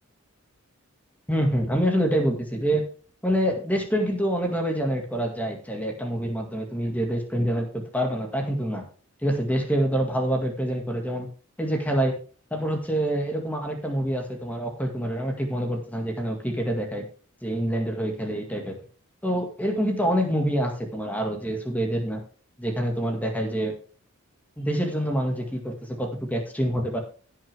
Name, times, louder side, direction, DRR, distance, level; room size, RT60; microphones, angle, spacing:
voice 1, 1.3-2.8 3.2-8.9 9.2-11.3 11.6-12.2 12.5-17.0 17.4-18.8 19.2-22.2 22.6-23.7 24.6-27.0, equal, 5° left, 2 dB, 2.0 m, -26 dB
16.0 x 6.3 x 3.5 m, 0.40 s
head